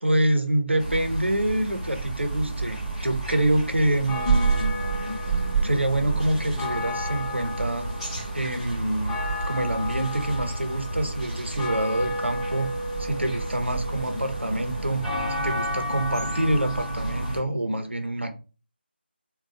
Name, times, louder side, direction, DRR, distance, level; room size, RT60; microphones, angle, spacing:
voice 1, 0.0-4.7 5.6-7.9 8.3-9.2 9.4-12.7 13.0-15.0 15.3-18.3, right 1 dB, 90° right, 7 dB, 0.8 m, -26 dB
sound 1, 0.8-17.4, right 2 dB, 5° right, 1.1 m, -29 dB
3.5 x 2.3 x 2.5 m, 0.33 s
figure-of-eight pair, 160°, 6 cm